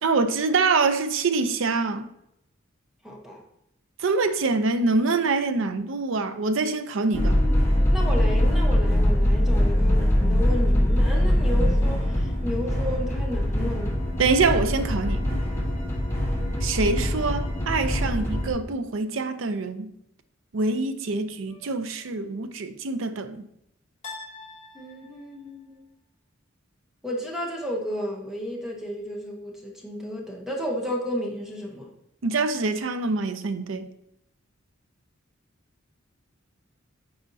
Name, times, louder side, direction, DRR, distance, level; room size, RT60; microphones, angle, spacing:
voice 1, 0.0-2.1 4.0-7.4 14.2-15.2 16.6-19.9 20.5-23.5 32.2-33.9, right 3 dB, 70° right, 0.5 m, -25 dB
voice 2, 3.0-3.4 7.9-14.0 24.7-25.8 27.0-31.9, equal, ahead, 0.9 m, -33 dB
sound 1, 7.1-18.5, left 1 dB, 15° left, 1.1 m, -22 dB
sound 2, 21.4-22.2 24.0-25.5, left 3 dB, 35° left, 1.5 m, -44 dB
8.7 x 4.2 x 2.7 m
head